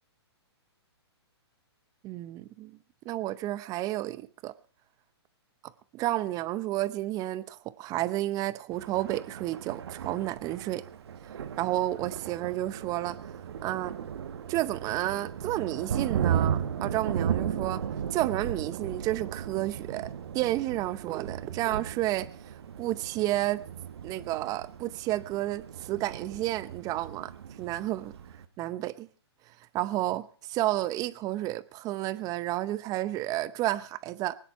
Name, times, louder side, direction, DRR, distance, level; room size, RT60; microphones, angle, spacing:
voice 1, 2.0-2.8 3.0-4.5 5.9-10.8 11.6-13.2 13.6-13.9 14.5-17.8 18.1-20.1 20.3-22.3 22.8-23.6 24.0-27.3 27.6-28.1 28.6-29.1 29.7-34.4, right 15 dB, 25° right, 0.7 m, -31 dB
Thunder, 8.7-28.5, right 8 dB, 65° right, 1.5 m, -36 dB
23.5 x 9.9 x 4.6 m
hypercardioid pair, 135°, 14 cm